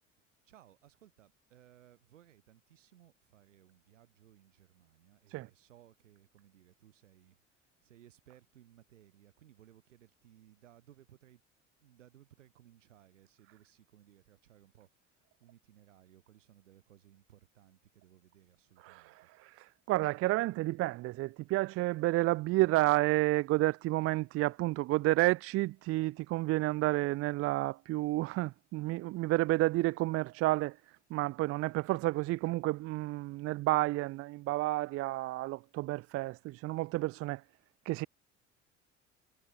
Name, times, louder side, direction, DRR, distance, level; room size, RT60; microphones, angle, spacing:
voice 1, 0.4-11.4 11.8-19.3, right 12 dB, 80° right, 3.3 m, -62 dB
voice 2, 18.8-30.8 31.1-37.4 37.9-38.1, right 19 dB, 40° right, 0.4 m, -30 dB
hypercardioid pair, 65°, 36 cm